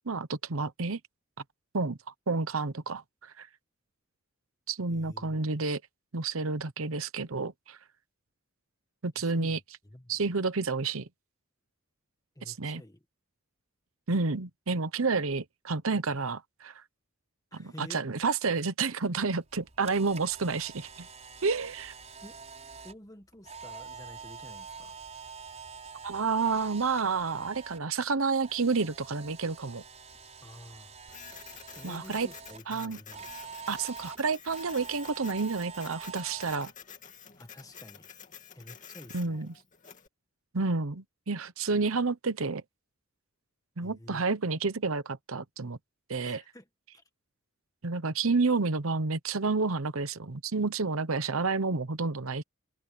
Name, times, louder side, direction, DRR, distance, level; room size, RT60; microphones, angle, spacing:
voice 1, 0.1-1.0 1.7-2.0 2.3-3.5 4.7-5.8 6.1-7.8 9.0-9.6 10.1-11.1 12.5-12.8 14.1-16.7 17.5-21.1 21.4-21.9 26.0-29.8 31.8-32.3 32.7-33.0 33.7-36.7 39.1-39.5 40.5-42.6 43.8-45.8 46.1-46.4 47.8-52.4, right 4 dB, 75° right, 1.0 m, -30 dB
voice 2, 4.9-5.4 9.1-10.2 12.3-13.0 17.5-18.0 22.2-22.4 22.8-25.0 30.4-31.0 31.8-33.3 37.4-38.1 38.5-39.5 43.8-44.2 46.2-46.7 46.9-47.0, left 1 dB, 15° left, 1.7 m, -50 dB
Camera, 19.4-27.8 28.1-32.6 33.1-36.6, right 5 dB, 30° right, 6.1 m, -46 dB
Printer, 31.1-40.1, left 8 dB, 35° left, 2.6 m, -50 dB
head